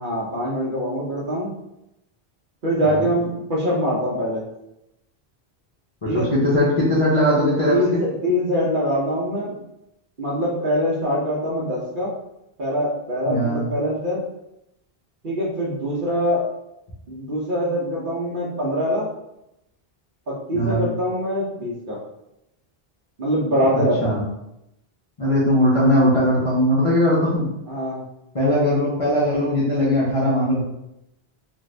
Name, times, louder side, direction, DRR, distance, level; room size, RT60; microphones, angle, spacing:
voice 1, 0.0-1.5 2.6-4.4 6.0-6.3 7.7-9.5 10.2-12.1 12.6-14.2 15.2-16.4 17.1-19.1 20.3-22.0 23.2-24.2 27.7-28.0, equal, 55° right, -6 dB, 0.9 m, -23 dB
voice 2, 6.0-8.0 13.3-13.6 20.5-20.8 23.7-24.2 25.2-27.5 28.3-30.6, equal, 35° left, -8 dB, 0.7 m, -19 dB
2.5 x 2.5 x 3.2 m, 0.86 s
omnidirectional pair, 1.0 m